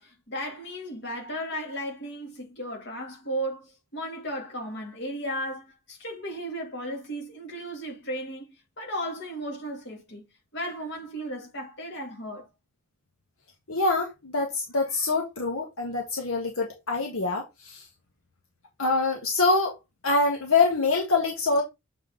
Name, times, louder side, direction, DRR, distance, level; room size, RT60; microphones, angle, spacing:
voice 1, 0.0-10.3 10.5-12.5, equal, 55° left, 2.4 m, -35 dB
voice 2, 13.7-17.8 18.8-19.8 20.0-21.6, left 3 dB, 80° left, 1.6 m, -25 dB
7.5 x 4.0 x 3.9 m
head